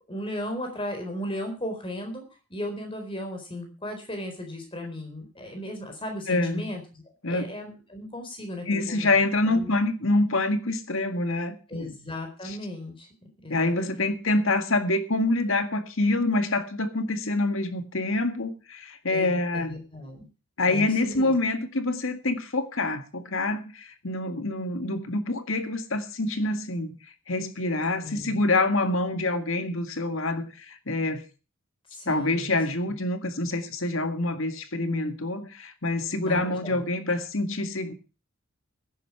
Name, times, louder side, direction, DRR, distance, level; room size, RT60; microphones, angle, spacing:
voice 1, 0.1-2.2 2.5-7.0 7.3-9.2 9.5-9.7 11.7-13.1 13.4-14.1 19.1-20.3 20.7-21.3 28.0-28.4 31.9-32.6 36.2-36.8 37.1-37.2, left 1 dB, 25° left, 4.2 m, -36 dB
voice 2, 6.3-6.7 7.2-7.5 8.7-11.9 12.4-12.6 13.5-19.8 20.6-27.0 27.3-31.2 32.1-37.9, left 2 dB, 75° left, 1.9 m, -26 dB
16.5 x 10.5 x 4.7 m
head